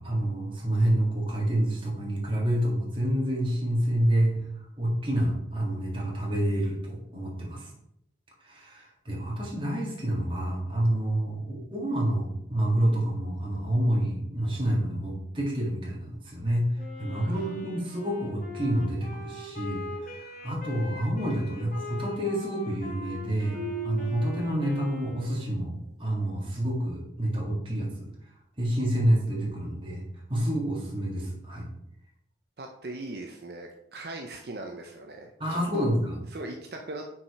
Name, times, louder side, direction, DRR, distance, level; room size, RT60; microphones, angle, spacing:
voice 1, 0.0-4.4 4.8-7.7 8.4-16.6 17.0-23.6 23.8-28.1 28.6-30.0 30.3-31.7 35.4-36.2, right 1 dB, 30° right, -2 dB, 1.6 m, -28 dB
Wind instrument woodwind instrument, 16.8-25.6, left 3 dB, 45° left, 1.4 m, -42 dB
voice 2, 17.2-17.6 32.6-35.9 36.3-37.0, right 2 dB, 60° right, 2 dB, 0.6 m, -40 dB
Marimba xylophone, 23.5-25.3, right 3 dB, 75° right, 1.5 m, -38 dB
5.9 x 4.8 x 4.1 m, 0.79 s
head